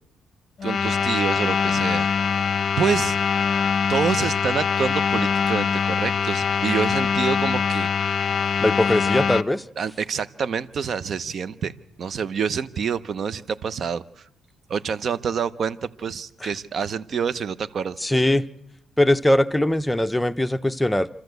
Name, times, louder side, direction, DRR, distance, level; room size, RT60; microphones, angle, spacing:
sound 1, 0.6-9.4, left 6 dB, 45° left, 0.7 m, -23 dB
voice 1, 0.6-2.1 2.8-3.2 3.9-8.3 9.8-11.7 12.0-14.0 14.7-18.0, right 6 dB, 55° right, 16 dB, 0.8 m, -27 dB
voice 2, 8.6-9.6 16.4-16.5 18.0-18.5 19.0-21.1, left 1 dB, 5° left, 10 dB, 0.7 m, -21 dB
26.5 x 13.0 x 8.0 m, 0.87 s
cardioid pair, 90°, 0 cm